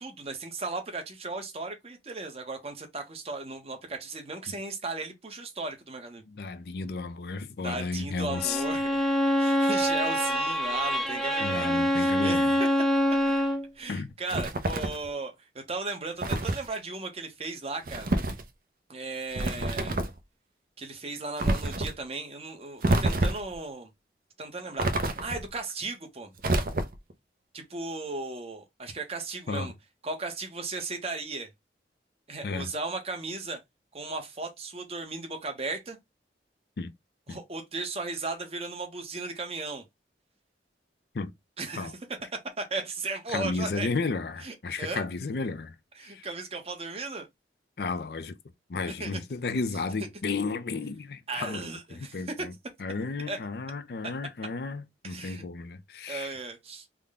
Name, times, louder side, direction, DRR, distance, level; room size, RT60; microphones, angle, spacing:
voice 1, 0.0-6.2 7.6-9.0 9.4-12.4 13.8-18.1 18.9-20.0 20.8-23.9 24.4-26.3 27.5-29.7 30.0-31.5 32.3-33.6 33.9-36.0 37.3-39.8 41.6-41.9 42.6-43.9 44.4-45.0 46.0-47.3 49.0-49.2 51.3-52.5 53.3-53.4 54.0-54.1 55.0-55.4 56.1-56.9, right 3 dB, 35° right, 0.8 m, -36 dB
voice 2, 6.3-8.6 9.5-9.7 11.4-12.5 13.9-14.1 29.5-29.7 32.4-32.7 36.8-36.9 37.3-37.4 41.1-41.3 41.8-41.9 43.3-45.8 46.0-46.3 47.8-48.4 48.7-51.7 51.9-52.5 52.8-56.4, left 4 dB, 60° left, 0.5 m, -33 dB
Bowed string instrument, 8.3-13.7, equal, ahead, 0.4 m, -25 dB
sound 1, 14.3-15.1 16.2-16.7 17.9-18.4 19.3-20.2 21.4-21.9 22.8-23.6 24.8-25.5 26.4-27.1, right 2 dB, 50° right, 0.5 m, -27 dB
3.6 x 2.2 x 3.5 m
head